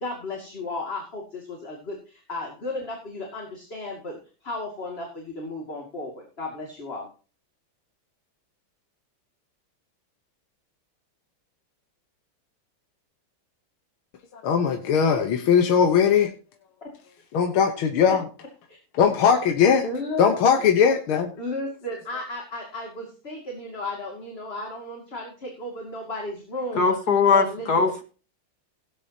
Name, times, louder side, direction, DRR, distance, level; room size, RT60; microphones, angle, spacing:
voice 1, 0.0-1.2 1.6-1.7 2.3-4.1 4.5-5.1 5.4-6.1 6.4-7.0 19.8-20.3 21.4-25.3 25.6-26.9 27.3-27.9, left 2 dB, 30° left, 2.6 m, -33 dB
voice 2, 14.3-16.3 17.3-18.2 19.0-19.9 20.2-21.3, left 7 dB, 80° left, 2.0 m, -19 dB
voice 3, 26.7-28.0, left 5 dB, 50° left, 2.3 m, -20 dB
17.0 x 9.9 x 2.9 m
omnidirectional pair, 2.2 m